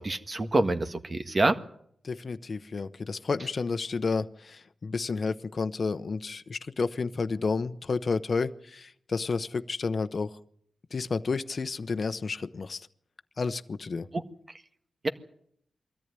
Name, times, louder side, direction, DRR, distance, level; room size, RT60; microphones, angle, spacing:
voice 1, 0.0-1.6 14.1-14.2, right 2 dB, 40° right, 8 dB, 1.7 m, -26 dB
voice 2, 2.0-10.3 10.9-12.9 13.4-14.1, left 4 dB, 55° left, 10 dB, 0.9 m, -31 dB
22.5 x 14.0 x 9.7 m, 0.69 s
cardioid pair, 60°, 0 cm